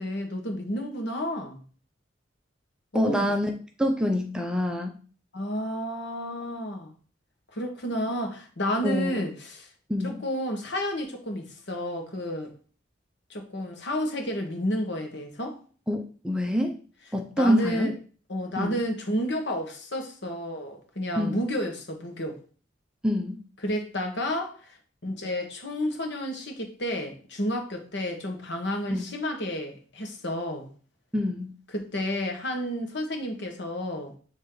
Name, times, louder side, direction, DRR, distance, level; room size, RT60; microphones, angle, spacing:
voice 1, 0.0-1.6 2.9-3.3 5.3-6.9 7.5-9.7 10.0-12.5 13.3-15.6 17.4-17.9 18.3-22.4 23.6-24.8 25.0-30.7 31.7-34.1, equal, 65° left, 1.5 m, -31 dB
voice 2, 2.9-3.5 3.8-5.0 8.8-9.2 9.9-10.2 15.9-16.8 17.1-17.9 18.6-18.8 21.2-21.5 23.0-23.4 28.9-29.1 31.1-31.5, equal, 5° right, 0.6 m, -26 dB
9.6 x 3.2 x 3.9 m
head